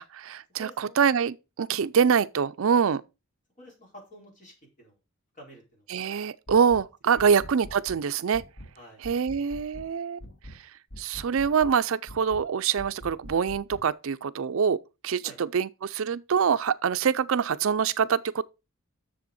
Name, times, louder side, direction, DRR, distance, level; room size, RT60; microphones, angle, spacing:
voice 1, 0.0-3.0 5.9-8.4 9.0-10.2 11.0-18.4, right 6 dB, 60° right, 0.4 m, -25 dB
voice 2, 0.6-1.0 3.6-5.0 5.3-5.8 7.1-7.3 8.8-9.1 15.2-15.4, equal, 35° left, 4.3 m, -49 dB
sound 1, 6.5-6.9 7.2-8.0 8.3-8.7 9.0-9.9 10.2-10.6 10.9-11.8 12.1-12.5 12.8-13.9, equal, 55° left, 1.4 m, -44 dB
7.7 x 6.9 x 5.3 m
head